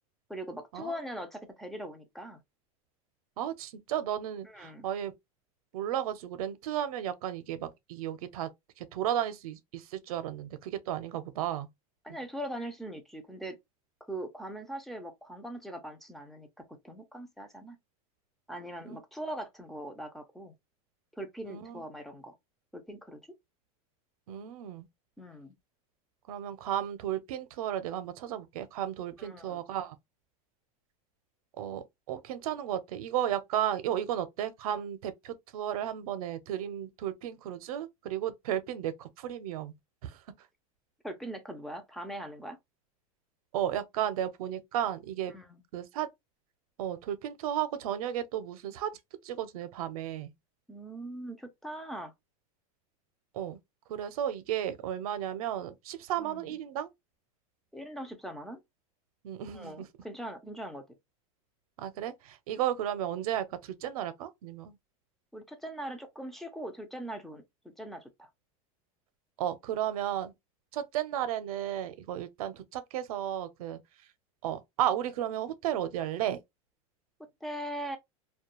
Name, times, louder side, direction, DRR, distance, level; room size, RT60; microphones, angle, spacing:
voice 1, 0.3-2.4 4.4-4.9 12.0-13.6 14.1-17.8 18.5-20.5 21.2-22.4 22.7-23.2 25.2-25.5 29.2-29.6 41.0-42.6 45.3-45.6 50.7-52.1 56.2-56.6 57.7-58.6 59.5-60.8 65.3-67.4 67.8-68.3 77.4-78.0, right 1 dB, ahead, 0.3 m, -41 dB
voice 2, 3.4-5.1 5.7-8.5 8.8-11.7 18.9-19.0 21.5-21.8 24.3-24.9 26.3-29.9 31.6-39.7 40.0-40.2 43.5-45.3 45.7-46.1 46.8-48.9 49.2-50.3 53.3-53.6 53.9-56.9 59.2-59.8 61.8-64.7 69.4-70.3 70.7-73.8 74.4-76.4, right 11 dB, 80° right, 0.5 m, -34 dB
2.3 x 2.1 x 2.9 m
supercardioid pair, 145°, 18 cm